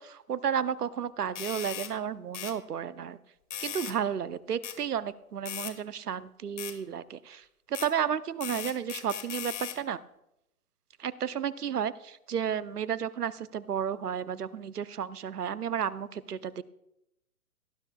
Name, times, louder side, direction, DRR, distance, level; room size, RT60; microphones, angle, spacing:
voice 1, 0.0-3.2 3.6-10.0 11.0-16.6, right 8 dB, 75° right, 16 dB, 0.8 m, -32 dB
sound 1, 1.4-1.9 2.3-2.6 3.5-4.0 4.6-4.8 5.5-5.7 6.6-6.8 7.7-7.9 8.4-9.8, left 9 dB, 50° left, 1.4 m, -38 dB
18.0 x 12.0 x 2.3 m, 0.85 s
figure-of-eight pair, 130°, 46 cm